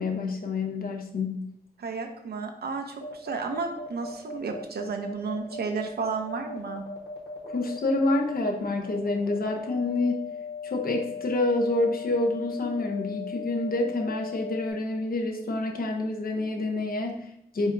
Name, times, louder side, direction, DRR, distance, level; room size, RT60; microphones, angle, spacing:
voice 1, 0.0-1.4 7.4-10.3 10.6-17.7, left 2 dB, 60° left, 2 dB, 0.8 m, -28 dB
voice 2, 1.8-6.8, right 4 dB, 75° right, 4 dB, 0.6 m, -32 dB
sound 1, 3.0-14.7, left 4 dB, 85° left, 1.2 m, -38 dB
4.7 x 4.1 x 2.6 m, 0.75 s
cardioid pair, 65°, 17 cm